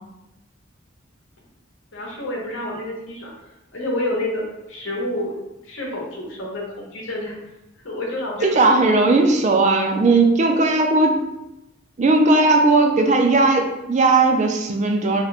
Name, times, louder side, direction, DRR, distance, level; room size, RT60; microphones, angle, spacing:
voice 1, 1.9-3.3 3.7-4.4 4.7-5.3 5.6-7.4 7.8-9.2, left 1 dB, 65° left, -2 dB, 0.9 m, -28 dB
voice 2, 8.4-11.2 12.0-15.2, right 3 dB, 35° right, 4 dB, 0.4 m, -17 dB
2.9 x 2.2 x 4.0 m, 0.94 s
head